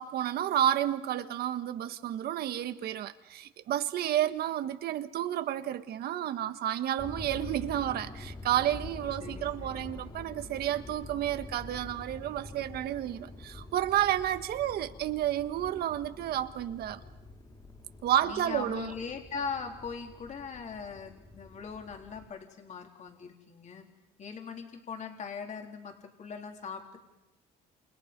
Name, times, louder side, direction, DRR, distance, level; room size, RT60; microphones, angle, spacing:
voice 1, 0.0-17.0 18.0-18.9, right 11 dB, 70° right, 1.6 m, -31 dB
sound 1, 7.0-22.3, left 2 dB, 25° left, 3.9 m, -46 dB
voice 2, 9.2-10.0 18.2-23.9 24.2-27.1, left 5 dB, 45° left, 3.9 m, -40 dB
29.5 x 28.5 x 5.4 m
cardioid pair, 110°, 17 cm